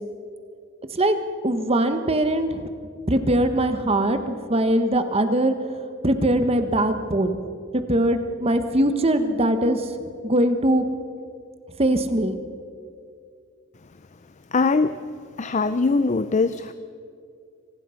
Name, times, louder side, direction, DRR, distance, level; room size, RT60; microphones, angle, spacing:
voice 1, 1.4-2.7 3.1-5.6 6.0-7.4 7.7-9.9 10.2-10.9 11.8-12.4, right 1 dB, 30° right, 9 dB, 1.3 m, -21 dB
voice 2, 14.5-15.0 15.4-16.7, left 3 dB, 35° left, 12 dB, 0.6 m, -21 dB
25.5 x 19.0 x 5.8 m, 2.3 s
head